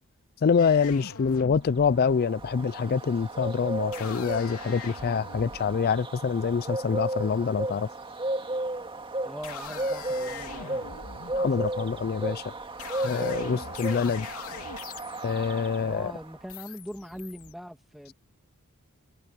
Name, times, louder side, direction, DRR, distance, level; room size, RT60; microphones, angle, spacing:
voice 1, 0.4-7.9 11.4-12.5 13.0-14.3 15.2-16.1, left 6 dB, 45° left, 0.4 m, -26 dB
sound 1, 0.6-7.3 8.4-8.8 9.3-17.5, left 5 dB, 70° left, 3.5 m, -43 dB
Bird, 1.7-16.4, right 2 dB, 25° right, 2.1 m, -34 dB
voice 2, 9.2-10.8 11.6-11.7 13.4-13.7 15.8-18.1, equal, ahead, 2.4 m, -41 dB
head